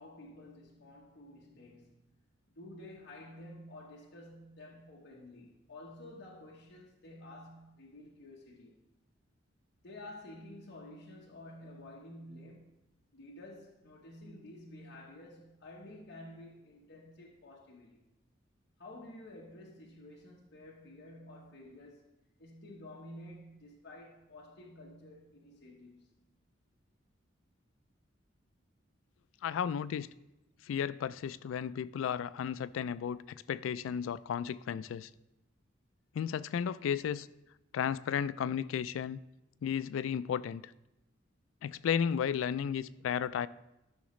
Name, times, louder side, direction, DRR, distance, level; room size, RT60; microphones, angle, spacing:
voice 1, 0.0-2.0 2.5-8.8 9.8-12.7 13.1-18.0 18.8-22.0 22.4-26.1, left 1 dB, 65° left, 1.0 m, -51 dB
voice 2, 29.4-30.1 30.7-35.1 36.1-37.3 37.7-39.2 39.6-40.7 41.6-43.5, left 8 dB, 85° left, 0.3 m, -34 dB
12.5 x 5.8 x 3.1 m
head